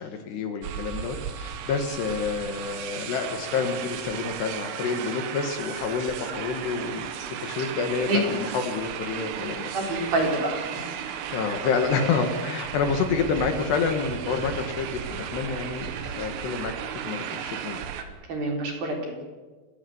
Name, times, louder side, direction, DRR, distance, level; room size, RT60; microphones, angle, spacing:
voice 1, 0.0-7.1 7.4-10.1 11.3-16.7 17.0-17.8, left 5 dB, 65° left, 6 dB, 3.4 m, -28 dB
sound 1, 0.6-18.0, right 8 dB, 80° right, 4.1 m, -35 dB
voice 2, 9.7-10.9 18.3-19.2, right 2 dB, 50° right, 2 dB, 5.5 m, -27 dB
29.0 x 16.5 x 8.0 m, 1.3 s
omnidirectional pair, 5.7 m